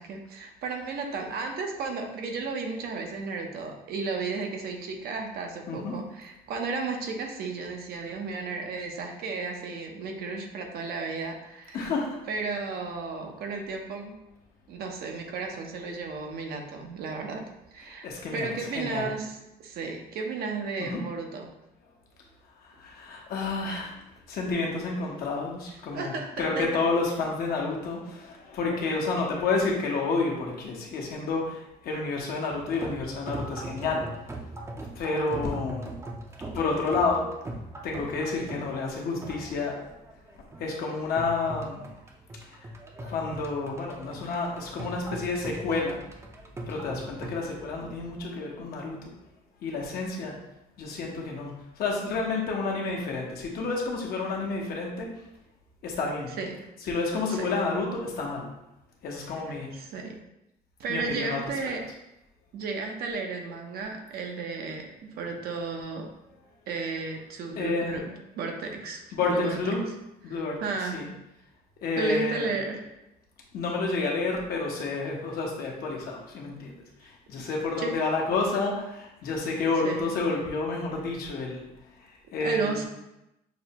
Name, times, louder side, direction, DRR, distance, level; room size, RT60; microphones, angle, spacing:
voice 1, 0.0-11.9 12.3-14.2 14.7-17.4 17.7-21.5 25.9-26.8 56.4-56.6 57.3-57.5 59.5-60.2 60.8-61.9 62.5-66.1 66.7-69.6 70.3-71.1 72.0-72.8 77.4-77.5 77.8-78.0 79.3-79.4 79.8-80.1 82.4-82.9, right 4 dB, 65° right, 3 dB, 0.7 m, -34 dB
voice 2, 5.7-6.0 11.7-12.1 18.0-19.1 20.8-21.0 22.7-23.9 24.3-34.0 35.0-35.9 36.5-37.3 37.8-39.8 40.6-41.8 42.4-42.6 43.0-46.0 46.7-49.0 49.6-50.4 50.8-55.1 55.8-56.3 56.8-58.5 59.0-59.7 60.9-61.7 67.6-68.0 69.1-69.9 70.2-71.1 71.8-72.6 73.5-76.7 77.0-81.6 82.3-82.9, left 3 dB, 65° left, -1 dB, 1.0 m, -30 dB
sound 1, 32.5-48.2, right 1 dB, 15° right, 0.5 m, -41 dB
6.0 x 2.2 x 2.8 m, 0.89 s
cardioid pair, 110°, 17 cm